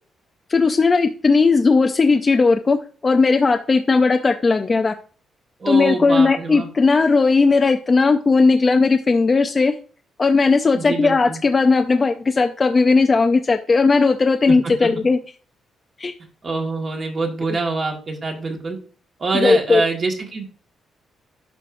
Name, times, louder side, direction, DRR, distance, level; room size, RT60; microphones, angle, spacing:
voice 1, 0.5-4.9 5.7-9.7 10.2-15.2 16.0-16.1 19.4-19.8, left 4 dB, 30° left, 5 dB, 0.5 m, -17 dB
voice 2, 5.6-6.7 10.7-11.4 14.5-15.0 16.4-18.8 19.2-20.5, right 3 dB, 40° right, 2 dB, 1.8 m, -25 dB
11.5 x 4.5 x 2.6 m, 0.39 s
cardioid pair, 120°, 0 cm